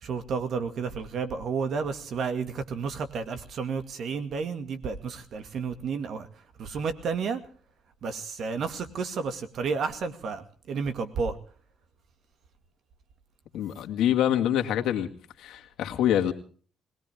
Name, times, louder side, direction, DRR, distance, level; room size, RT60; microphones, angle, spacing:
voice 1, 0.0-7.4 8.0-11.4, right 5 dB, 65° right, 9 dB, 2.1 m, -31 dB
voice 2, 13.5-15.1 15.4-16.3, left 11 dB, 85° left, 4 dB, 2.0 m, -25 dB
21.5 x 18.5 x 3.6 m, 0.43 s
cardioid pair, 90°, 0 cm